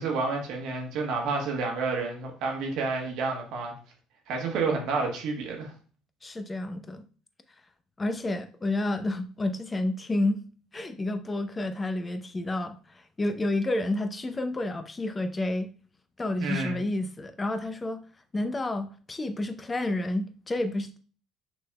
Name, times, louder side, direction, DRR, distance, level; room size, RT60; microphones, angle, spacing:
voice 1, 0.0-3.7 4.3-5.7 16.4-16.8, right 4 dB, 65° right, 1.3 m, -30 dB
voice 2, 6.2-7.0 8.0-10.4 10.7-15.7 16.2-18.0 18.3-21.0, left 2 dB, 25° left, 0.6 m, -30 dB
6.0 x 3.4 x 2.2 m
hypercardioid pair, 65°, 0 cm